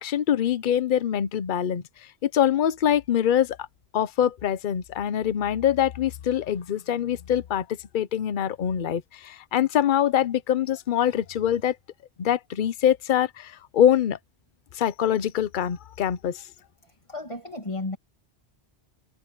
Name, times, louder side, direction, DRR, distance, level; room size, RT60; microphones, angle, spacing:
voice 1, 0.0-1.8 2.2-3.7 3.9-7.7 7.9-11.8 12.2-14.2 14.7-16.4, left 10 dB, 50° left, 0.8 m, -24 dB
voice 2, 16.8-18.0, left 2 dB, 25° left, 2.5 m, -34 dB
omnidirectional pair, 1.2 m